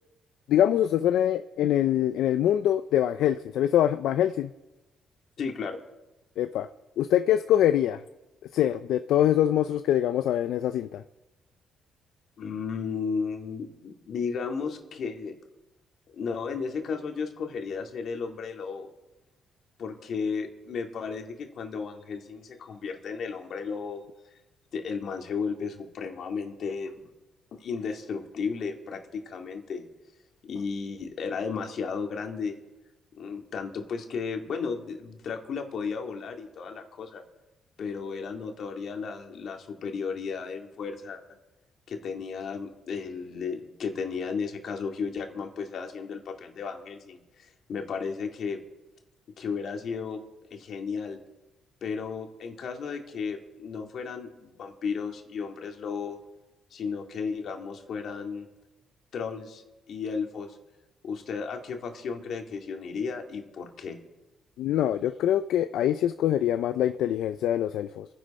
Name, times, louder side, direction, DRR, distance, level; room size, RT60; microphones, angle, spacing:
voice 1, 0.5-4.5 6.4-6.7 7.0-8.0 8.5-11.0 64.6-68.1, left 11 dB, 80° left, 10 dB, 0.5 m, -24 dB
voice 2, 5.4-5.8 12.4-15.3 16.1-18.9 19.8-24.0 24.7-26.9 27.5-29.9 30.4-32.6 33.1-37.2 37.8-41.2 41.9-48.6 49.4-50.2 50.5-51.2 51.8-56.2 56.7-58.5 59.1-60.6 61.0-64.0, left 5 dB, 65° left, 3 dB, 2.3 m, -34 dB
28.0 x 10.5 x 4.3 m, 1.0 s
cardioid pair, 90°, 0 cm